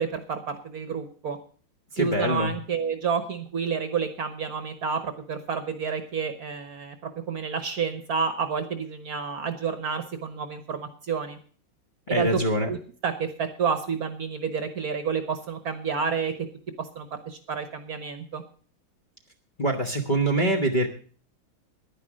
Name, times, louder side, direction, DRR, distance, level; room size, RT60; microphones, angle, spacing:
voice 1, 0.0-1.4 1.9-7.0 7.3-11.4 12.1-12.4 12.7-12.8 13.0-16.3 16.8-18.4, right 6 dB, 55° right, 9 dB, 1.3 m, -29 dB
voice 2, 2.0-2.6 12.1-12.7 19.6-20.9, right 1 dB, 30° left, -1 dB, 1.2 m, -24 dB
10.5 x 10.0 x 6.2 m, 0.42 s
omnidirectional pair, 2.2 m